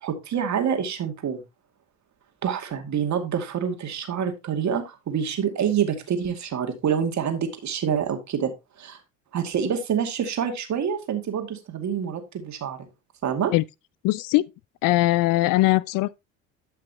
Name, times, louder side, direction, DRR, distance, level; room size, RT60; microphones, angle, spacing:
voice 1, 0.0-1.4 2.4-8.5 8.8-9.0 9.3-12.8 13.2-13.5, right 7 dB, 45° right, 2.3 m, -27 dB
voice 2, 14.0-14.5 14.8-16.2, left 18 dB, 55° left, 0.5 m, -20 dB
12.5 x 5.8 x 2.9 m
hypercardioid pair, 75°, 39 cm